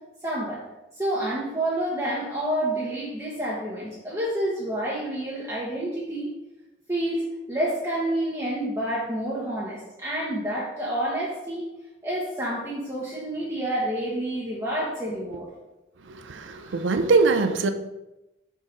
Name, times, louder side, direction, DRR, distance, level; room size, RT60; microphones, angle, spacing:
voice 1, 0.2-0.6 1.0-6.3 6.9-11.7 12.0-15.5 16.6-16.8, right 1 dB, 15° right, -7 dB, 1.0 m, -29 dB
voice 2, 16.1-17.7, right 4 dB, 80° right, 8 dB, 0.5 m, -22 dB
6.3 x 5.4 x 3.9 m, 0.98 s
head